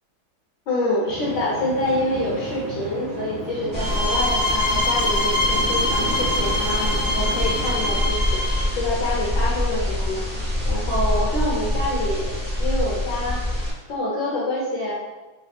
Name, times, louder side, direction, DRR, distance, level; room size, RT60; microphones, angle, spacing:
voice 1, 0.7-12.3 12.6-14.9, left 1 dB, 70° left, -6 dB, 1.2 m, -27 dB
sound 1, 1.0-8.0, right 1 dB, 75° right, 0.9 m, -33 dB
sound 2, 3.7-13.7, left 1 dB, 15° right, 0.4 m, -25 dB
sound 3, 3.8-8.7, left 1 dB, 90° left, 1.5 m, -24 dB
3.5 x 2.2 x 2.5 m, 1.1 s
omnidirectional pair, 2.3 m